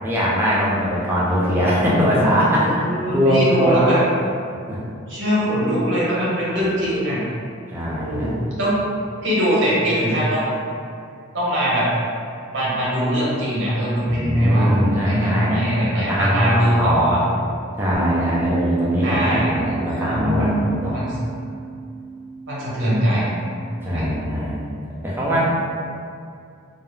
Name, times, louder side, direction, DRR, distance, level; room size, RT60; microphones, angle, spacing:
voice 1, 0.0-2.7 3.1-3.8 4.7-4.8 7.7-8.4 14.0-15.5 15.9-17.2 17.8-21.0 23.8-24.7 25.0-25.4, equal, 10° right, -7 dB, 0.3 m, -21 dB
voice 2, 2.6-4.1 5.1-7.2 7.9-8.8 9.2-10.6 11.3-11.9 12.5-17.2 19.0-19.8 20.0-21.1 22.5-23.3 23.9-24.3, equal, 60° right, -8 dB, 0.8 m, -21 dB
Bass guitar, 17.9-24.2, right 4 dB, 55° left, 0.9 m, -31 dB
2.3 x 2.0 x 3.0 m, 2.4 s
head